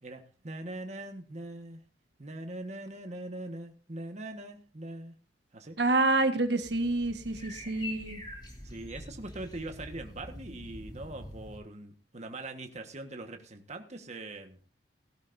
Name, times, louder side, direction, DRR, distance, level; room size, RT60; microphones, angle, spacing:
voice 1, 0.0-1.8 2.2-5.1 5.5-5.8 7.3-7.8 8.6-14.6, right 2 dB, 40° right, 5 dB, 1.4 m, -42 dB
voice 2, 5.8-8.2, right 2 dB, 70° right, 7 dB, 1.5 m, -27 dB
sound 1, 6.6-11.6, left 1 dB, 25° left, 4.9 m, -45 dB
18.0 x 12.5 x 2.7 m, 0.38 s
head